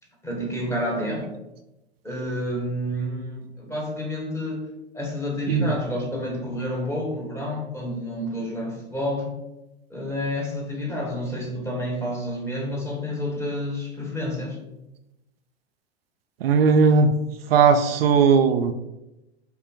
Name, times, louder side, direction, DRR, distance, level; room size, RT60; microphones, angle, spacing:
voice 1, 0.2-1.3 2.0-4.7 4.9-9.3 9.9-14.6, left 1 dB, 10° left, -1 dB, 1.1 m, -29 dB
voice 2, 16.4-17.1 17.5-18.7, right 5 dB, 65° right, 7 dB, 0.4 m, -17 dB
5.6 x 2.1 x 3.8 m, 0.96 s
hypercardioid pair, 100°, 32 cm